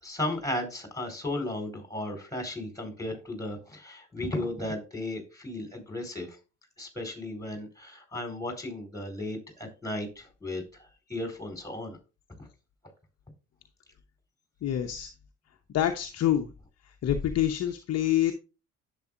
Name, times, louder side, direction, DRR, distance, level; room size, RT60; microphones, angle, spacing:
voice 1, 0.0-6.4 6.8-12.0 12.4-12.5, left 1 dB, 10° left, 5 dB, 4.5 m, -35 dB
voice 2, 14.6-15.1 15.7-16.5 17.0-18.3, left 11 dB, 40° left, 6 dB, 1.0 m, -26 dB
10.5 x 8.1 x 2.6 m, 0.31 s
figure-of-eight pair, 45°, 37 cm